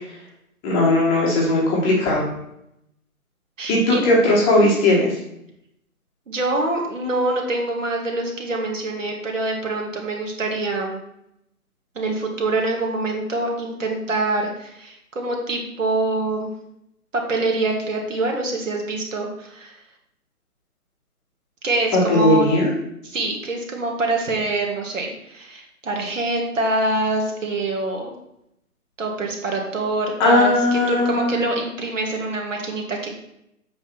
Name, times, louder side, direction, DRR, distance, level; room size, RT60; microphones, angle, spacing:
voice 1, 0.6-2.2 3.7-5.1 22.1-22.7 30.2-31.4, left 1 dB, 10° left, -4 dB, 1.3 m, -18 dB
voice 2, 3.6-4.0 6.3-11.0 11.9-16.5 17.1-19.7 21.6-22.5 23.0-28.1 29.0-33.1, right 2 dB, 55° right, 0 dB, 2.4 m, -25 dB
8.6 x 3.6 x 6.0 m, 0.80 s
figure-of-eight pair, 150°, 45 cm